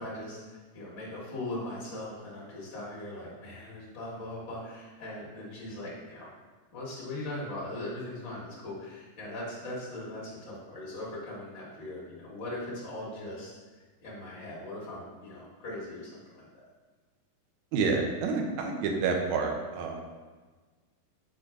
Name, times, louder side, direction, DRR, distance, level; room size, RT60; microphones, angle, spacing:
voice 1, 0.0-6.3 6.7-13.5 14.0-16.5, left 1 dB, 50° left, -6 dB, 1.6 m, -40 dB
voice 2, 17.7-20.0, right 4 dB, 80° right, 2 dB, 1.7 m, -29 dB
5.4 x 4.5 x 4.8 m, 1.4 s
omnidirectional pair, 4.2 m